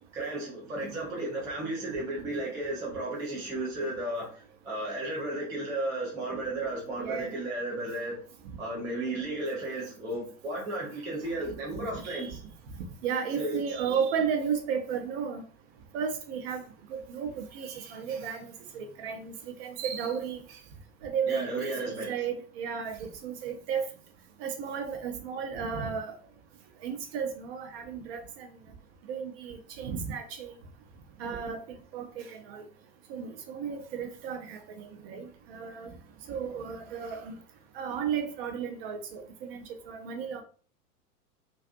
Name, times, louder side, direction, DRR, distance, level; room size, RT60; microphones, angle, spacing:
voice 1, 0.1-8.2 8.6-12.4 13.3-13.6 21.3-22.1, right 2 dB, 10° right, 0.3 m, -34 dB
voice 2, 7.0-7.3 12.0-12.3 12.8-15.4 15.9-16.6 16.9-19.3 19.6-20.4 21.0-23.9 24.4-26.1 26.8-28.5 29.1-30.5 31.2-31.6 31.9-32.6 33.1-35.9 36.3-37.4 37.7-40.4, right 7 dB, 40° right, 0.6 m, -34 dB
2.5 x 2.5 x 2.4 m
figure-of-eight pair, 95°, 45 cm